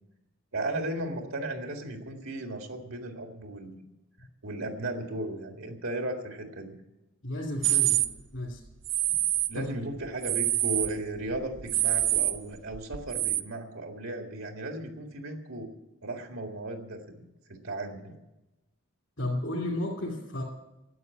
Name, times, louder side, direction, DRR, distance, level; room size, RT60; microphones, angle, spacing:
voice 1, 0.5-3.8 4.4-6.8 9.1-9.2 9.5-15.7 16.0-18.2, right 1 dB, 80° right, 4 dB, 1.9 m, -36 dB
voice 2, 7.2-8.0 8.3-8.6 9.5-9.7 19.2-20.4, left 1 dB, 65° left, -4 dB, 2.7 m, -32 dB
sound 1, 7.6-8.1 8.9-9.5 10.0-11.0 11.3-13.4, right 14 dB, 65° right, 0.7 m, -26 dB
12.5 x 8.5 x 9.5 m, 0.97 s
head